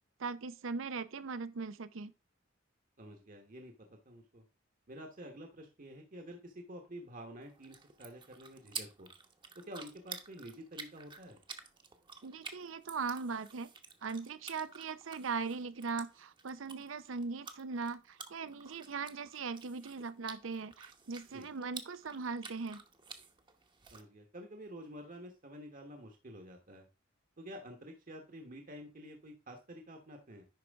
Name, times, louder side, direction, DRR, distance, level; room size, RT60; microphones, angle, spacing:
voice 1, 0.2-2.1 12.2-13.7 14.0-22.8, right 4 dB, 85° right, 0.6 m, -39 dB
voice 2, 3.0-4.4 4.9-9.1 9.7-11.4 21.3-21.5 23.9-26.9 27.4-30.4, equal, 45° right, 1.2 m, -49 dB
sound 1, 7.4-24.0, right 5 dB, 25° right, 1.0 m, -51 dB
10.5 x 4.5 x 3.5 m
head